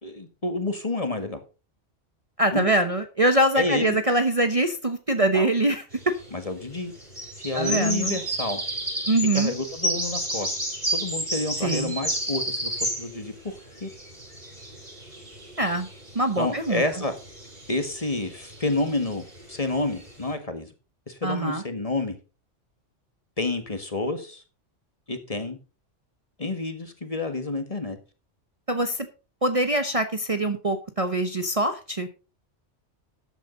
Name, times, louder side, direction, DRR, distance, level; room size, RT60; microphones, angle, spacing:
voice 1, 0.0-1.4 2.5-2.7 3.5-4.0 5.3-5.5 6.3-6.9 7.4-8.6 9.3-10.5 10.9-13.9 16.4-17.1 17.7-20.7 21.1-22.2 23.4-24.4 25.1-25.6 26.4-28.0, left 2 dB, 30° left, 8 dB, 1.7 m, -29 dB
voice 2, 2.4-6.1 7.5-8.2 9.1-9.5 11.6-11.9 15.6-15.9 16.1-16.8 21.2-21.6 28.7-29.1 29.4-32.1, right 1 dB, 30° right, 7 dB, 1.0 m, -23 dB
sound 1, 5.9-6.4 7.0-13.2 13.6-20.3, right 1 dB, 45° right, 6.4 m, -31 dB
13.0 x 9.1 x 3.9 m, 0.32 s
omnidirectional pair, 1.3 m